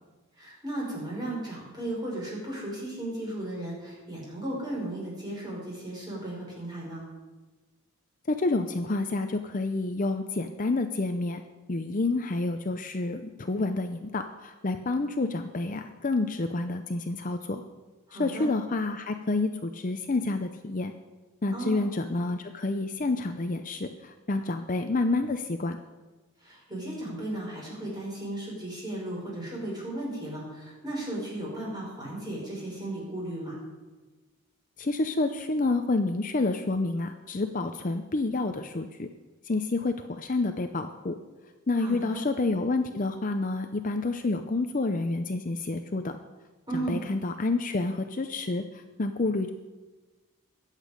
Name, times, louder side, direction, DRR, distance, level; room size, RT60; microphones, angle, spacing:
voice 1, 0.4-7.1 18.1-18.5 21.5-21.8 26.4-33.6 41.7-42.2 46.7-47.0, right 1 dB, 20° right, -4 dB, 5.6 m, -35 dB
voice 2, 8.3-11.4 11.7-17.6 18.1-20.9 21.4-25.8 34.8-39.1 39.4-41.2 41.7-46.2 46.7-49.5, left 3 dB, 35° left, 7 dB, 0.6 m, -29 dB
22.0 x 8.3 x 5.2 m, 1.2 s
head